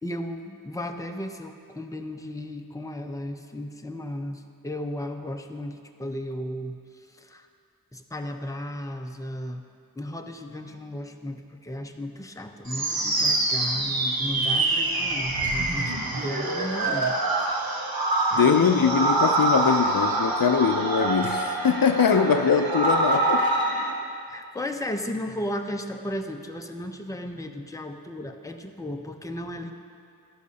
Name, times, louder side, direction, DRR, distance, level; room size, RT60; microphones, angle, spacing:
voice 1, 0.0-7.5 7.9-9.6 10.0-17.8 18.3-19.1 24.3-29.7, left 1 dB, 10° left, 4 dB, 0.6 m, -35 dB
sound 1, 12.7-23.9, right 2 dB, 70° right, 1.1 m, -25 dB
voice 2, 18.3-23.5, left 6 dB, 65° left, 8 dB, 0.5 m, -22 dB
13.5 x 11.5 x 2.8 m, 2.4 s
wide cardioid pair, 45°, 37 cm